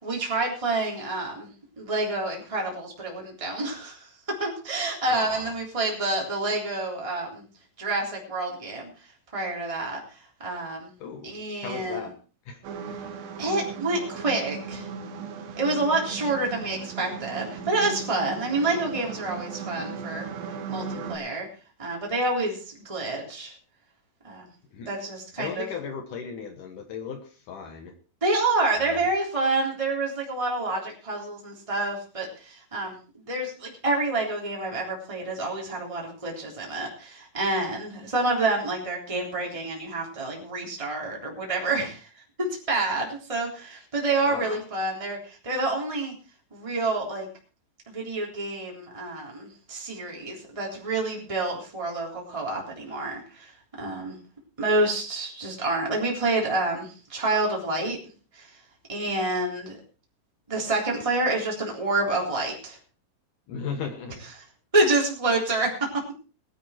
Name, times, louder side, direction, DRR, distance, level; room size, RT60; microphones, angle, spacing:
voice 1, 0.0-1.5 1.8-7.4 7.8-8.9 9.3-10.0 10.4-10.9 11.2-12.0 13.4-14.9 15.6-20.3 20.7-21.5 21.8-23.5 24.2-24.4 24.9-25.7 28.2-42.1 42.4-46.1 46.5-47.3 47.9-53.5 53.8-54.2 54.6-58.0 58.3-58.5 58.9-59.8 60.5-62.8 64.7-66.0, right 2 dB, 10° right, -1 dB, 3.3 m, -28 dB
voice 2, 5.1-5.5 11.0-11.3 11.6-12.2 12.5-12.6 24.7-24.9 25.4-27.9 28.7-29.1 44.2-44.6 63.5-64.1, left 6 dB, 65° left, 5 dB, 2.8 m, -36 dB
sound 1, 12.6-21.2, right 6 dB, 80° right, 3.3 m, -37 dB
20.0 x 9.9 x 4.4 m, 0.37 s
omnidirectional pair, 4.2 m